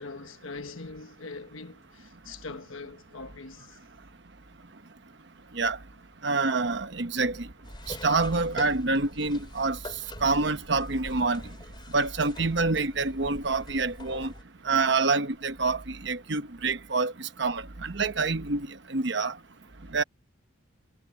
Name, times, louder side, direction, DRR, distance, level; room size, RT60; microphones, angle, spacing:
voice 1, 0.0-3.8 14.2-14.3 19.8-19.9, left 3 dB, 80° left, 1.2 m, -42 dB
voice 2, 6.2-7.5 7.9-9.8 10.2-11.4 11.9-14.3 14.6-19.3 19.9-20.0, right 3 dB, 55° right, 1.0 m, -27 dB
sound 1, 7.6-14.4, left 1 dB, 25° left, 3.2 m, -44 dB
head